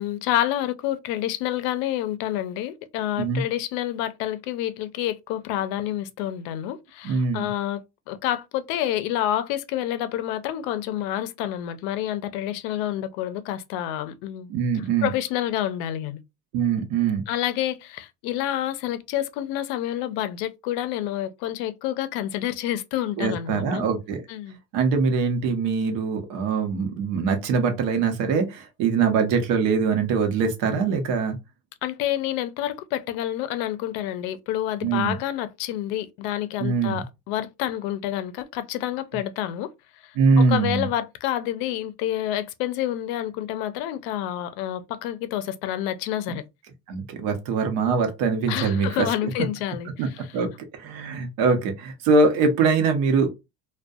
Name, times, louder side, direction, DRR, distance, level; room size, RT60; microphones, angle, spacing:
voice 1, 0.0-16.2 17.3-23.8 24.3-24.6 31.8-39.7 40.0-46.4 48.5-50.5, left 12 dB, 90° left, 0.5 m, -28 dB
voice 2, 7.0-7.5 14.5-15.1 16.5-17.2 23.2-24.2 24.7-31.4 34.8-35.2 36.6-37.0 40.2-40.9 46.9-48.9 50.0-50.1 50.3-50.5 50.8-53.3, right 4 dB, 75° right, 0.8 m, -22 dB
2.6 x 2.2 x 2.3 m
cardioid pair, 175°, 36 cm